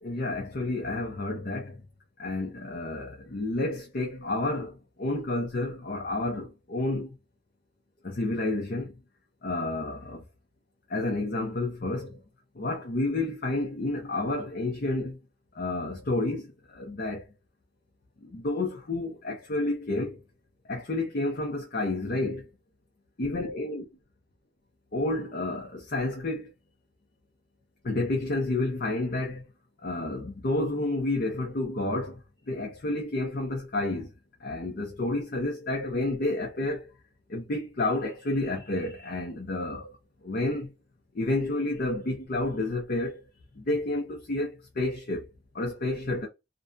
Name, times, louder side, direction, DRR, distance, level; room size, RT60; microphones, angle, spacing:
voice 1, 0.0-1.8 2.2-7.2 8.0-8.9 9.4-10.2 10.9-12.2 12.6-15.2 15.5-16.5 16.7-17.2 18.2-20.2 20.7-22.5 23.2-23.8 24.9-26.5 27.8-29.4 29.8-32.2 32.5-34.1 34.4-36.9 37.3-39.9 40.2-40.7 41.1-43.2 43.6-45.3 45.5-46.3, left 2 dB, 55° left, 0.6 m, -30 dB
2.5 x 2.1 x 2.4 m
head